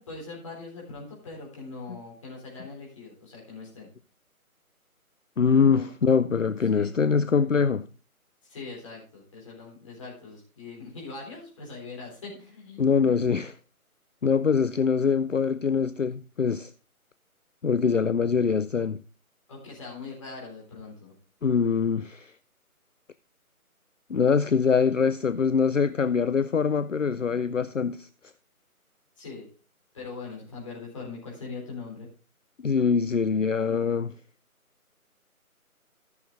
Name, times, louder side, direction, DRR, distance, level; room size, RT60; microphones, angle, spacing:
voice 1, 0.0-3.9 5.7-5.9 6.7-6.9 8.4-13.2 19.5-21.1 29.2-29.4 29.9-32.1, left 4 dB, 20° left, 4.0 m, -41 dB
voice 2, 5.4-7.9 12.8-13.5 14.2-16.7 17.6-19.0 21.4-22.3 24.1-28.1 32.6-34.1, left 6 dB, 60° left, 0.5 m, -23 dB
14.0 x 7.2 x 3.8 m
figure-of-eight pair, 160°, 43 cm